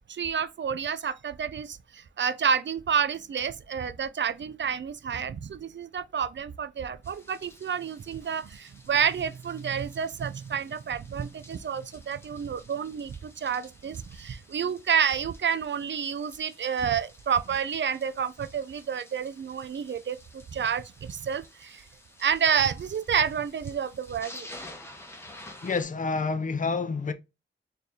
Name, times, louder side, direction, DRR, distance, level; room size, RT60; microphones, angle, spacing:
voice 1, 0.1-21.8 22.2-24.5, right 7 dB, 60° right, 0.4 m, -29 dB
sound 1, 7.0-25.8, left 1 dB, 10° left, 1.0 m, -51 dB
voice 2, 25.6-27.1, left 4 dB, 40° left, 0.5 m, -28 dB
4.1 x 3.3 x 2.7 m
wide cardioid pair, 100°, 21 cm